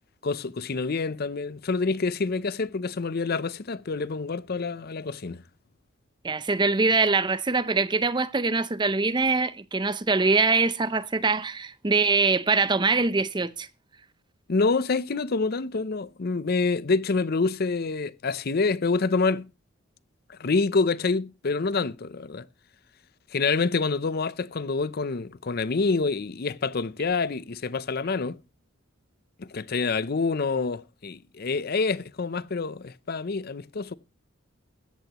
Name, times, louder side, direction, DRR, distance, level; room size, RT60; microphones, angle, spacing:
voice 1, 0.2-5.4 14.5-19.5 20.3-22.5 23.3-28.4 29.4-34.0, left 4 dB, 50° left, 0.6 m, -27 dB
voice 2, 6.2-13.7, right 3 dB, 20° right, 0.6 m, -23 dB
16.0 x 13.5 x 3.0 m
head